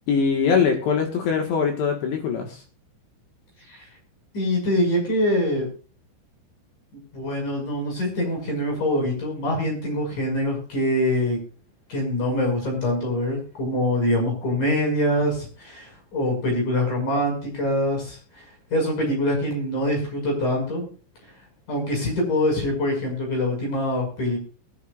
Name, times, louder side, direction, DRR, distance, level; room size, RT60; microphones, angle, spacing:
voice 1, 0.1-2.6, left 6 dB, 70° left, 3 dB, 3.3 m, -22 dB
voice 2, 4.3-5.7 6.9-11.4 11.9-18.4 18.7-20.8 21.7-24.4, left 1 dB, 40° left, 0 dB, 7.0 m, -24 dB
21.5 x 10.0 x 2.5 m, 0.38 s
omnidirectional pair, 5.8 m